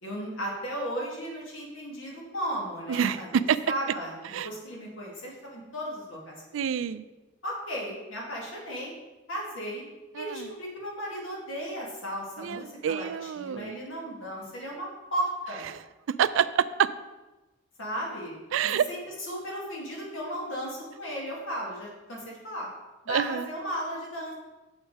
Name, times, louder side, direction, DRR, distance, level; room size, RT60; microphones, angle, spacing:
voice 1, 0.0-6.6 7.4-8.9 9.3-9.8 10.2-15.6 17.8-18.3 18.6-22.7 23.0-24.3, equal, 85° left, -3 dB, 2.2 m, -35 dB
voice 2, 2.9-3.6 4.3-4.5 6.5-7.1 10.2-10.5 12.4-13.8 16.1-16.9 18.5-18.9 23.1-23.5, right 8 dB, 80° right, 15 dB, 0.3 m, -27 dB
7.2 x 5.3 x 4.7 m, 1.1 s
head